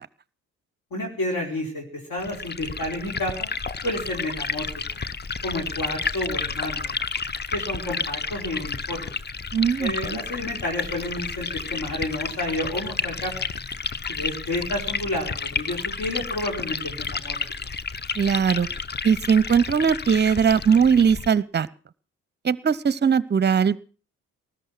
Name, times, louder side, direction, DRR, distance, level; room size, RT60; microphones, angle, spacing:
voice 1, 0.9-3.5 3.8-4.7 5.4-7.0 7.5-9.1 9.8-13.3 14.1-17.4, left 1 dB, 50° left, 2 dB, 4.4 m, -30 dB
Liquid, 2.2-21.3, left 5 dB, 25° left, 0.9 m, -31 dB
voice 2, 9.5-10.2 18.2-18.7 19.0-21.7 22.4-23.8, right 7 dB, 25° right, 21 dB, 0.8 m, -20 dB
20.0 x 12.0 x 6.0 m, 0.38 s
figure-of-eight pair, 40°, 43 cm